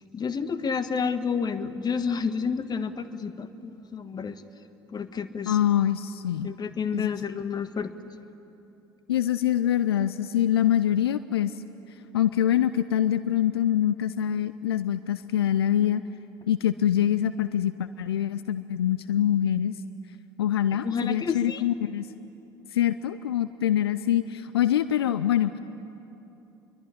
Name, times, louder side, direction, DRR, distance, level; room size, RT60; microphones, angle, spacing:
voice 1, 0.1-4.4 4.9-5.6 6.4-7.9 20.7-21.6, left 6 dB, 30° left, 11 dB, 1.5 m, -30 dB
voice 2, 5.5-6.5 6.9-7.1 9.1-11.5 12.1-16.0 16.5-19.8 20.4-22.1 22.7-25.6, left 11 dB, 80° left, 14 dB, 0.5 m, -24 dB
26.5 x 22.5 x 10.0 m, 3.0 s
figure-of-eight pair, 60°, 13 cm